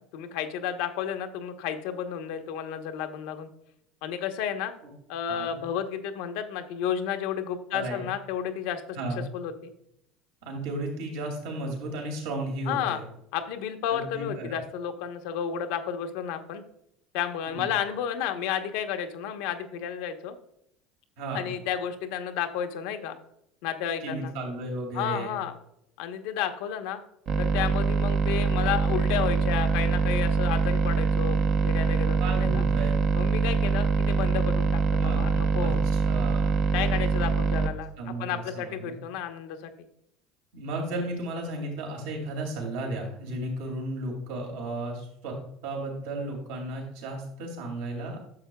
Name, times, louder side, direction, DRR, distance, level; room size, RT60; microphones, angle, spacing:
voice 1, 0.1-3.5 4.0-4.7 5.1-8.8 9.3-9.7 12.7-13.0 13.3-16.6 17.1-20.4 21.3-23.2 23.6-24.3 24.9-25.5 26.0-27.0 27.4-31.4 31.6-32.6 33.1-35.8 36.7-39.7, left 9 dB, 75° left, 7 dB, 1.0 m, -32 dB
voice 2, 5.3-5.6 7.7-8.0 8.9-9.2 10.4-13.0 13.9-14.6 17.5-17.7 21.2-21.5 24.0-25.3 32.2-32.9 34.9-36.5 38.0-38.9 40.5-45.3 45.6-48.2, right 2 dB, 80° right, 0 dB, 2.5 m, -34 dB
sound 1, 27.3-37.7, right 5 dB, 50° right, 0.7 m, -24 dB
11.0 x 7.0 x 2.3 m, 0.76 s
supercardioid pair, 95°, 0 cm